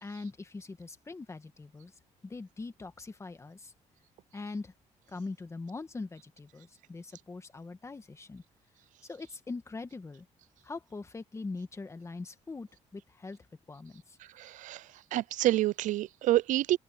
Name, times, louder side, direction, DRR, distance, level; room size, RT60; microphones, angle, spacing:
voice 1, 0.0-1.9 2.2-3.7 4.3-4.7 5.1-8.4 9.0-10.2 10.6-13.4 13.7-14.2, left 3 dB, 20° left, 1.6 m, -42 dB
voice 2, 14.4-14.8 15.1-16.8, right 14 dB, 75° right, 0.4 m, -27 dB
open air
cardioid pair, 120°, 13 cm